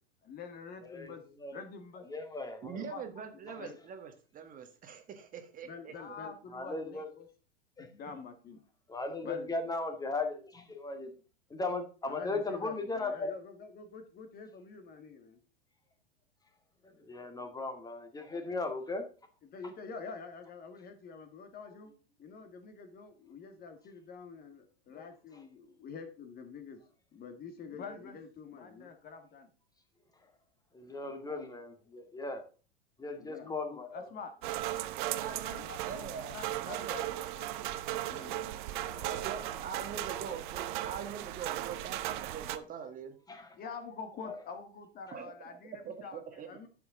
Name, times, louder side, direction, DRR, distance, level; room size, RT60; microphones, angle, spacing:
voice 1, 0.2-1.2 1.5-2.1 2.7-3.8 5.6-7.3 7.8-8.6 9.2-9.5 12.1-15.4 19.4-21.9 22.2-26.8 27.1-29.5 33.2-34.3 35.5-40.2 43.6-46.7, left 5 dB, 30° left, 8 dB, 1.8 m, -47 dB
voice 2, 2.1-2.9 6.5-7.1 7.8-7.9 8.9-11.1 11.5-13.3 17.0-19.0 30.7-32.4 33.0-34.0 43.3-43.6 44.2-44.4, left 3 dB, 10° left, 6 dB, 1.9 m, -37 dB
voice 3, 2.6-6.0 35.2-37.0 39.0-43.2 45.1-45.3 45.8-46.7, right 7 dB, 25° right, 7 dB, 1.5 m, -43 dB
sound 1, 34.4-42.6, right 14 dB, 50° right, 0.9 m, -37 dB
10.5 x 7.0 x 3.7 m, 0.35 s
figure-of-eight pair, 95°, 30 cm